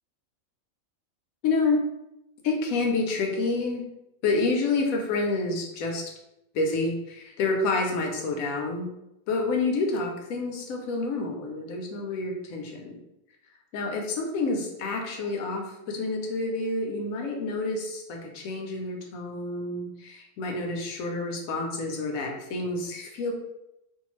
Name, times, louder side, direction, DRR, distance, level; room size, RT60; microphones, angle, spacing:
voice 1, 1.4-1.8 2.4-3.9 4.2-6.1 6.5-8.9 9.3-13.0 13.7-23.3, left 3 dB, 90° left, 1 dB, 1.0 m, -28 dB
2.6 x 2.2 x 3.0 m, 0.88 s
omnidirectional pair, 1.4 m